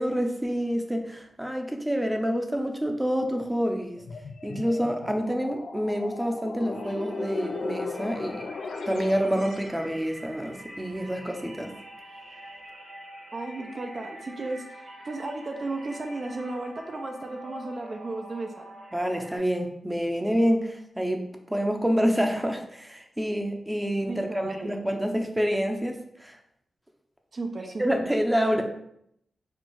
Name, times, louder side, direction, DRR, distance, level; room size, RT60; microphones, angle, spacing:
voice 1, 0.0-4.0 4.4-8.5 8.9-11.7 18.9-26.4 27.8-28.6, equal, 10° right, 4 dB, 0.6 m, -27 dB
sound 1, 4.0-9.8, left 4 dB, 80° left, 0.4 m, -36 dB
sound 2, 6.7-19.4, right 1 dB, 75° right, 1.2 m, -45 dB
voice 2, 13.3-18.6 24.1-24.7 27.3-27.8, right 2 dB, 50° right, 3 dB, 0.5 m, -34 dB
4.4 x 2.4 x 4.5 m, 0.75 s
wide cardioid pair, 90°, 0 cm